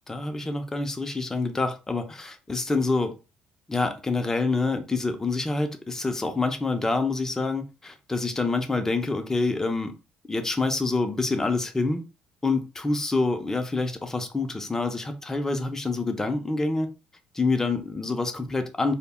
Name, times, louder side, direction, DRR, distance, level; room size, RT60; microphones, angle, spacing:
voice 1, 0.1-3.1 3.7-9.9 10.3-12.0 12.4-16.9 17.3-18.9, left 3 dB, 15° left, 0.5 m, -27 dB
2.0 x 2.0 x 3.5 m
cardioid pair, 90°, 3 cm